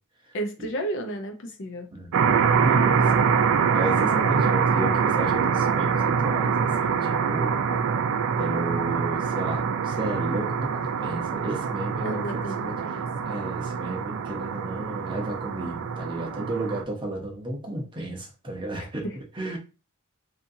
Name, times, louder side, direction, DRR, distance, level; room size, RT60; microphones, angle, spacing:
voice 1, 0.3-1.9 12.0-13.0 18.8-19.2, right 1 dB, 55° left, 0.6 m, -33 dB
voice 2, 1.9-3.3 3.7-7.6 8.4-12.7 13.2-19.0 19.4-19.6, right 1 dB, 20° right, 0.7 m, -33 dB
sound 1, 2.1-16.8, right 6 dB, 60° right, 0.3 m, -24 dB
2.8 x 2.5 x 2.6 m
head